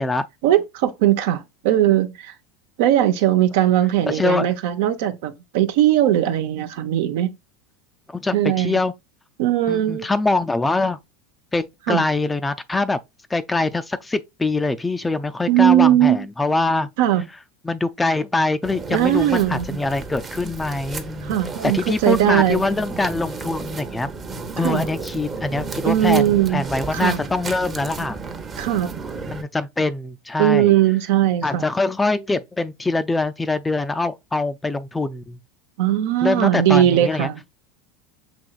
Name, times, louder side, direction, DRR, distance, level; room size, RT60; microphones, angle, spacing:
voice 1, 0.4-2.3 2.8-7.3 8.3-8.8 9.4-10.1 11.9-12.0 15.5-16.3 17.0-17.2 18.9-19.6 21.2-22.6 24.6-24.8 25.8-26.6 26.9-27.2 28.6-28.9 30.4-31.6 35.8-37.4, right 12 dB, 70° right, 0.6 m, -19 dB
voice 2, 4.1-4.5 8.1-8.9 9.7-11.0 11.5-13.0 13.3-16.9 17.6-21.4 21.6-24.1 24.6-28.2 29.3-30.7 31.4-35.4 36.2-37.3, left 3 dB, 10° left, 0.4 m, -23 dB
sound 1, 18.6-29.4, right 4 dB, 25° right, 0.8 m, -33 dB
6.1 x 3.0 x 2.4 m
supercardioid pair, 110°, 0 cm